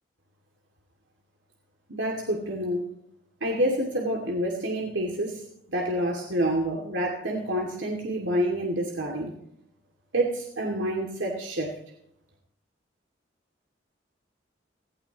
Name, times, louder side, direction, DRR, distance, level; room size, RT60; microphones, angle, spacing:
voice 1, 1.9-2.8 3.4-9.3 10.1-11.7, right 1 dB, 90° right, 0 dB, 2.4 m, -28 dB
18.0 x 15.5 x 3.0 m, 0.76 s
head